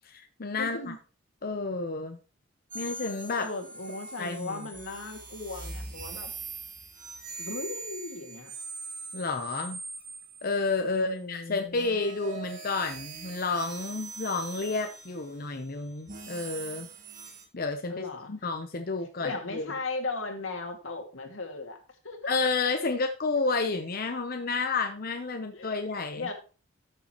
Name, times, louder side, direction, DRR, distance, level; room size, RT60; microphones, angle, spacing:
voice 1, 0.0-0.9 1.4-2.2 2.7-3.5 4.2-4.7 9.1-9.8 10.4-16.9 17.5-19.7 22.3-26.3, left 3 dB, 50° left, 5 dB, 0.8 m, -30 dB
voice 2, 0.6-1.0 3.4-6.3 7.4-8.5 10.9-12.0 17.9-18.3 19.2-21.8 22.0-22.4 25.5-25.9 26.1-26.3, left 3 dB, 90° left, 3 dB, 2.2 m, -37 dB
sound 1, 2.7-11.0 11.7-17.4, right 4 dB, 45° right, 2.3 m, -42 dB
12.5 x 6.8 x 3.0 m, 0.34 s
head